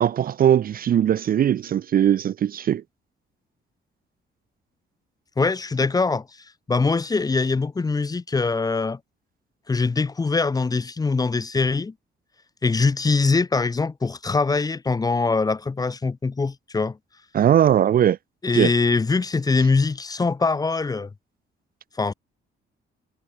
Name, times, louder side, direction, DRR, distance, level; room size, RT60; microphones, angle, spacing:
voice 1, 0.0-2.8 17.3-18.2 18.5-18.7, right 10 dB, 45° right, 0.5 m, -19 dB
voice 2, 5.4-6.3 6.7-9.0 9.7-11.9 12.6-17.0 18.4-21.1 22.0-22.1, left 4 dB, 15° left, 0.7 m, -22 dB
cardioid pair, 150°, 21 cm